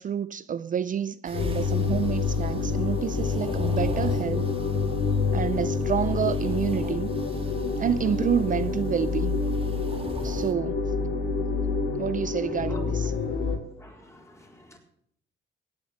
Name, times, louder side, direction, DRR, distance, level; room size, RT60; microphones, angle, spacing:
voice 1, 0.0-4.5 5.3-7.1 7.8-9.4 10.2-10.8 12.0-13.1, right 8 dB, 40° right, 0.5 m, -28 dB
sound 1, 1.2-10.5, right 2 dB, 25° right, 1.9 m, -43 dB
sound 2, 1.3-13.6, left 4 dB, 75° left, 2.7 m, -27 dB
voice 2, 12.4-12.8 13.8-14.8, left 2 dB, 15° left, 4.1 m, -48 dB
17.5 x 8.5 x 6.5 m
cardioid pair, 90°, 20 cm